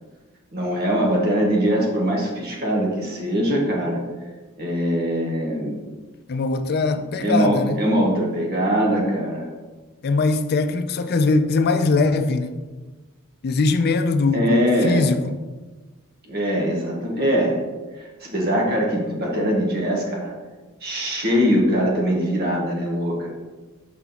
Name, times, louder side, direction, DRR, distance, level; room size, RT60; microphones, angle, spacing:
voice 1, 0.5-4.0 4.6-5.7 6.9-9.5 14.3-15.1 16.2-17.6 18.0-20.3 20.8-23.3, equal, 45° right, 1.4 m, -22 dB
voice 2, 6.3-7.8 10.0-12.6 13.4-15.3, left 3 dB, 50° left, 0.4 m, -21 dB
5.8 x 4.2 x 4.0 m
head